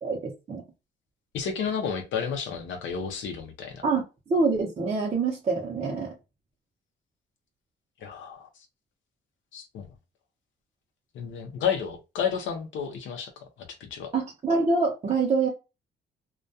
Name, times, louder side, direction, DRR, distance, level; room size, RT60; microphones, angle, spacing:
voice 1, 0.0-0.6 3.8-4.0 4.3-6.1 14.1-15.5, right 4 dB, 35° right, 0.7 m, -25 dB
voice 2, 1.3-3.8 8.0-8.5 9.5-9.9 11.1-14.1, left 7 dB, 75° left, 0.5 m, -31 dB
2.2 x 2.2 x 2.6 m
cardioid pair, 90°, 20 cm